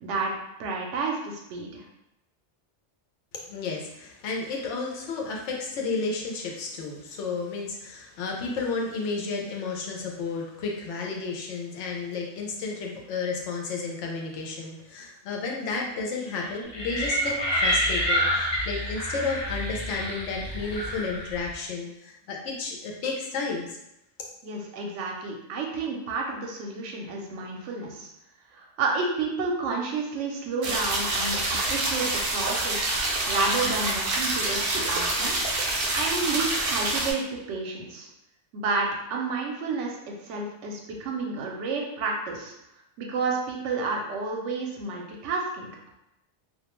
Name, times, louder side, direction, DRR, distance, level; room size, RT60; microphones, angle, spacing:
voice 1, 0.0-0.3 0.6-1.8 24.4-28.1 28.5-35.4 35.9-38.1 38.5-42.5 43.0-45.7, right 3 dB, 80° right, 0 dB, 0.9 m, -30 dB
voice 2, 3.5-23.8, left 4 dB, 80° left, 0 dB, 0.9 m, -32 dB
sound 1, 16.7-21.5, equal, 40° left, 0.4 m, -28 dB
sound 2, 30.6-37.1, right 2 dB, 60° right, 0.6 m, -27 dB
2.3 x 2.1 x 2.9 m, 0.86 s
omnidirectional pair, 1.2 m